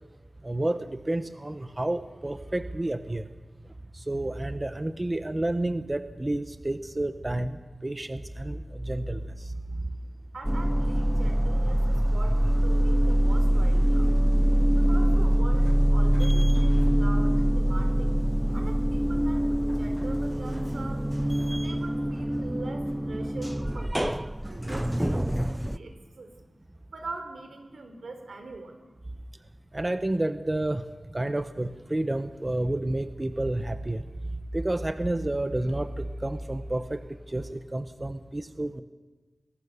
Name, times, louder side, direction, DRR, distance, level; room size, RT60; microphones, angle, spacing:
voice 1, 0.4-3.3 3.9-9.5 23.9-24.3 29.7-30.8 31.1-34.0 34.5-38.8, right 1 dB, 25° right, 10 dB, 1.0 m, -30 dB
voice 2, 10.3-14.1 14.7-18.1 18.5-21.1 21.5-26.3 26.9-28.7, right 3 dB, 85° right, 6 dB, 4.1 m, -43 dB
sound 1, 10.4-25.8, equal, 5° right, 0.7 m, -24 dB
30.0 x 22.0 x 6.9 m, 1.3 s
wide cardioid pair, 95°, 0 cm